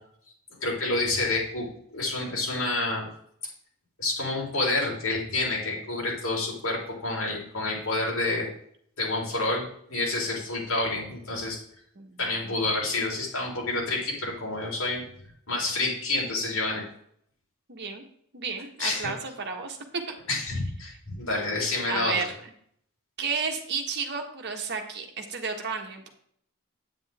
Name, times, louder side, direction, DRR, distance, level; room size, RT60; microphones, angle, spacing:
voice 1, 0.6-3.1 4.0-8.5 9.0-11.6 12.2-15.0 15.5-16.8 18.8-19.1 20.3-22.1, left 2 dB, 75° left, -3 dB, 4.0 m, -28 dB
voice 2, 11.9-12.6 17.7-18.0 18.3-19.8 20.1-20.2 21.9-22.3 23.2-26.1, right 5 dB, 55° right, 3 dB, 1.6 m, -32 dB
9.1 x 9.0 x 3.6 m, 0.66 s
head